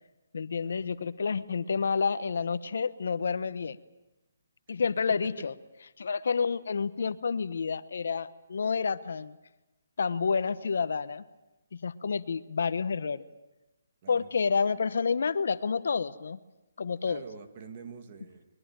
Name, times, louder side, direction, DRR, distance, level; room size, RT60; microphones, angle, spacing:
voice 1, 0.3-3.8 4.7-5.5 6.0-9.4 10.0-11.2 11.7-13.2 14.1-16.4 16.8-17.2, left 5 dB, 65° left, 13 dB, 1.1 m, -29 dB
voice 2, 14.0-14.3 17.0-18.5, right 6 dB, 35° right, 7 dB, 2.1 m, -46 dB
23.0 x 22.0 x 8.9 m, 1.0 s
hypercardioid pair, 165°, 0 cm